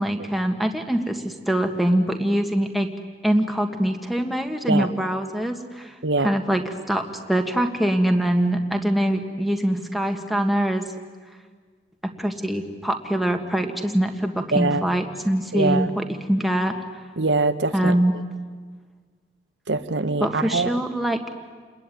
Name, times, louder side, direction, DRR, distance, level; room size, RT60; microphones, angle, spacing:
voice 1, 0.0-2.9 3.2-5.9 6.2-6.6 6.9-7.0 7.3-10.9 12.2-15.9 16.3-16.8 17.7-18.1 20.2-21.2, right 1 dB, ahead, 4 dB, 1.6 m, -23 dB
voice 2, 14.5-14.9 15.5-15.9 17.2-18.0 19.7-20.8, right 3 dB, 90° right, 11 dB, 1.2 m, -23 dB
29.5 x 21.0 x 9.3 m, 1.5 s
head